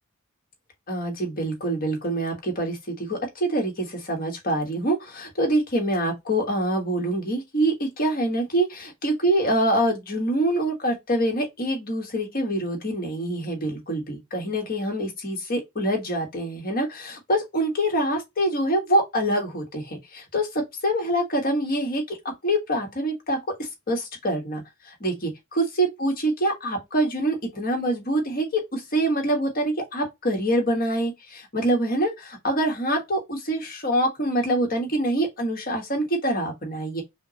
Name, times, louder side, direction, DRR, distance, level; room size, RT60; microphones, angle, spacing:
voice 1, 0.9-22.2 22.4-37.0, right 1 dB, 45° left, 1.4 m, -25 dB
5.5 x 2.1 x 2.8 m
head